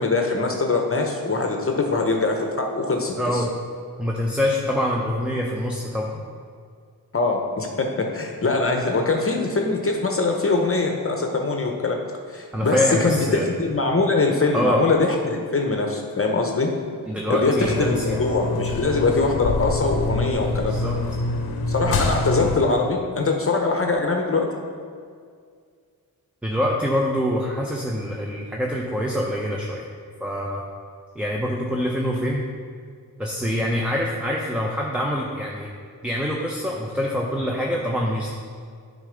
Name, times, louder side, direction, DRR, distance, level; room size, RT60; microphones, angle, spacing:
voice 1, 0.0-3.4 7.1-12.0 12.3-16.7 17.3-20.9 21.7-24.5, left 3 dB, 40° left, 2 dB, 0.8 m, -22 dB
voice 2, 3.2-3.5 4.0-6.2 12.5-13.5 14.5-14.8 17.1-18.2 20.7-21.0 26.4-29.9 30.2-30.6 31.1-32.4 33.2-35.7 36.0-38.3, equal, 5° right, -1 dB, 0.7 m, -25 dB
sound 1, 17.5-22.6, left 3 dB, 90° left, 0.7 m, -26 dB
8.8 x 3.8 x 5.1 m, 2.1 s
cardioid pair, 70°, 36 cm